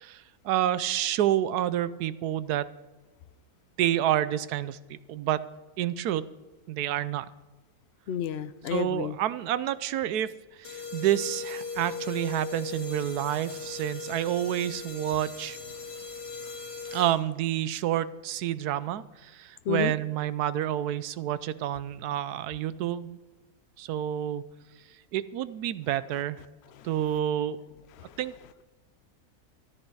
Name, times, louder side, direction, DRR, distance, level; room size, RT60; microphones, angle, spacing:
voice 1, 0.0-2.7 3.8-5.5 5.8-6.3 6.7-7.3 8.7-15.6 16.9-23.2 23.8-24.5 25.1-26.4 26.8-27.6 28.2-28.3, right 12 dB, 80° right, 16 dB, 1.1 m, -29 dB
voice 2, 8.1-9.2 19.7-19.9 26.8-26.9 28.0-28.2, left 9 dB, 80° left, 12 dB, 0.5 m, -31 dB
sound 1, 10.6-17.4, left 4 dB, 40° left, 1.6 m, -38 dB
13.5 x 12.0 x 4.7 m, 1.2 s
omnidirectional pair, 1.7 m